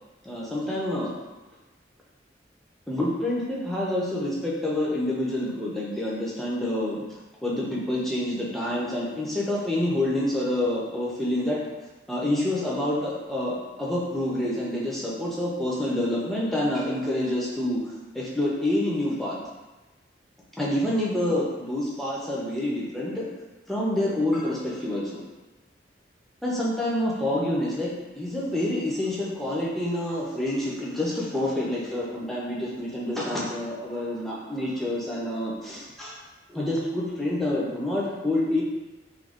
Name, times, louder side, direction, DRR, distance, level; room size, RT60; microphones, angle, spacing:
voice 1, 0.2-1.1 2.9-7.0 7.4-11.6 12.1-19.4 20.6-23.3 23.7-25.2 26.4-27.9 28.2-36.2 36.5-38.6, left 1 dB, ahead, -5 dB, 0.4 m, -27 dB
2.3 x 2.2 x 3.4 m, 1.1 s
head